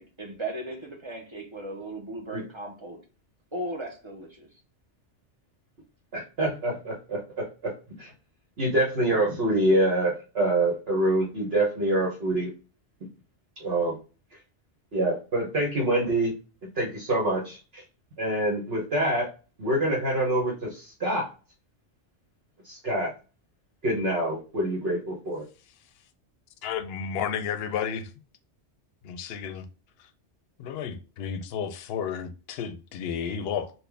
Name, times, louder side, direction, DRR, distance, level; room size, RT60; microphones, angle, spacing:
voice 1, 0.0-3.0 3.5-4.5, right 1 dB, 30° right, 0.6 m, -36 dB
voice 2, 6.1-7.7 8.0-8.1 8.6-12.5 13.6-13.9 14.9-16.3 16.8-17.8 18.2-19.3 19.6-21.3 22.6-23.1 23.8-25.4, right 1 dB, 60° right, 1.2 m, -26 dB
voice 3, 26.6-28.1 29.0-29.6 30.0-30.1 30.6-33.7, left 7 dB, 65° left, 0.7 m, -32 dB
4.1 x 2.2 x 3.3 m
omnidirectional pair, 1.2 m